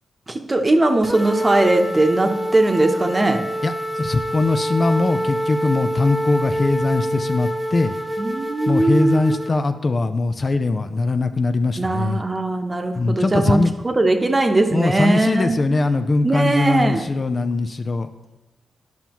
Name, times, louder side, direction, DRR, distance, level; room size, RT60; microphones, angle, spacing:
voice 1, 0.3-3.4 5.0-5.2 8.2-9.4 11.8-15.8 16.2-17.1, right 2 dB, 30° right, 5 dB, 0.9 m, -20 dB
sound 1, 1.0-9.5, equal, ahead, 1.1 m, -26 dB
voice 2, 3.6-7.9 8.7-12.2 12.9-13.7 14.7-18.1, left 3 dB, 40° left, 8 dB, 0.4 m, -21 dB
10.5 x 5.6 x 3.0 m, 1.0 s
cardioid pair, 60°, 0 cm